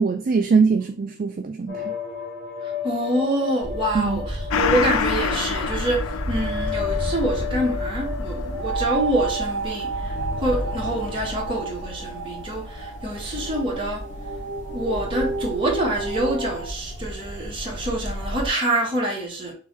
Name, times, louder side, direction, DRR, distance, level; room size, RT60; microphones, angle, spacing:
voice 1, 0.0-1.9 3.9-4.2, right 5 dB, 40° right, 0.3 m, -22 dB
sound 1, 1.7-16.7, equal, 60° left, 1.4 m, -32 dB
voice 2, 2.8-14.0 14.7-19.5, right 1 dB, 25° right, 1.5 m, -26 dB
sound 2, 3.6-18.5, equal, 35° left, 1.2 m, -33 dB
Gong, 4.5-13.5 13.8-13.9, left 6 dB, 85° left, 0.4 m, -31 dB
3.9 x 3.1 x 4.4 m
head